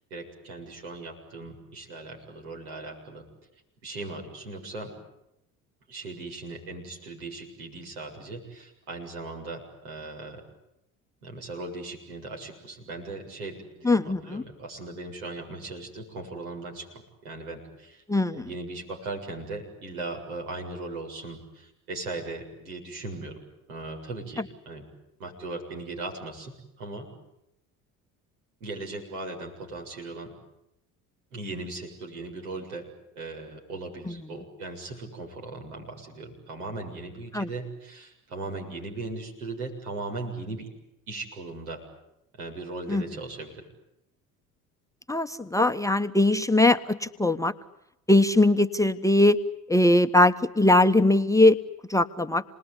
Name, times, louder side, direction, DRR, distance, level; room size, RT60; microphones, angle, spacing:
voice 1, 0.1-3.2 3.8-4.9 5.9-10.4 11.2-18.0 18.3-23.4 23.7-24.9 25.2-27.1 28.6-30.3 31.3-32.9 33.2-40.7 41.1-41.8 42.3-43.7, right 2 dB, 80° right, 1 dB, 7.4 m, -38 dB
voice 2, 13.8-14.4 18.1-18.5 37.3-37.5 42.9-43.0 45.1-47.5 48.1-49.4 49.7-51.6 51.9-52.4, left 2 dB, 5° left, 7 dB, 1.1 m, -21 dB
29.0 x 20.0 x 9.9 m, 0.85 s
hypercardioid pair, 65°, 43 cm